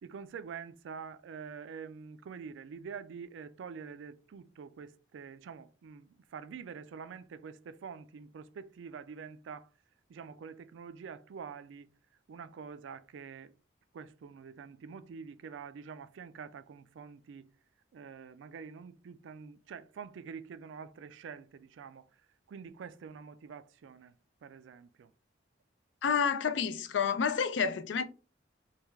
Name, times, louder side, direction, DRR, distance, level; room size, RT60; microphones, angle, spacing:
voice 1, 0.0-9.7 10.1-11.9 12.3-13.5 13.9-17.5 17.9-22.1 22.5-24.1 24.4-25.1, right 6 dB, 85° right, 0.3 m, -46 dB
voice 2, 26.0-28.0, left 6 dB, 80° left, 0.4 m, -29 dB
3.2 x 2.3 x 3.4 m
head